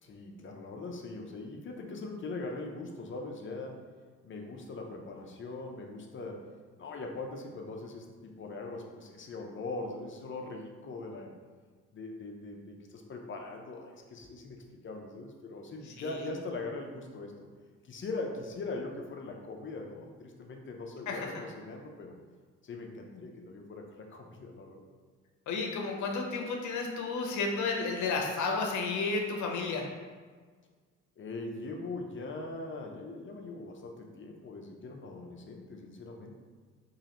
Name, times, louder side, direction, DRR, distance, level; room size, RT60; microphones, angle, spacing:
voice 1, 0.0-3.8 4.2-6.5 6.8-11.3 11.9-17.3 17.8-22.2 22.6-24.8 31.2-36.4, left 3 dB, 40° left, 1 dB, 0.6 m, -41 dB
voice 2, 25.5-29.9, left 4 dB, 75° left, 2 dB, 0.7 m, -32 dB
3.9 x 3.0 x 2.9 m, 1.5 s
cardioid pair, 90°, 30 cm